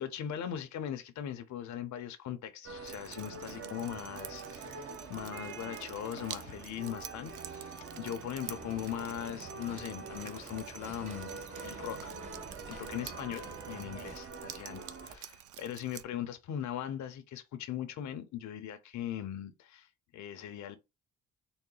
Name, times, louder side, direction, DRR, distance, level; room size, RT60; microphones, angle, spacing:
voice 1, 0.0-11.3 11.6-12.1 12.7-19.9 20.1-20.8, left 10 dB, 65° left, 0.7 m, -40 dB
sound 1, 2.6-15.2, right 4 dB, 45° right, 1.0 m, -45 dB
Drip, 2.8-16.0, right 11 dB, 80° right, 0.5 m, -49 dB
sound 2, 8.4-14.2, right 3 dB, 25° right, 1.0 m, -51 dB
3.9 x 2.1 x 3.8 m
cardioid pair, 90°, 30 cm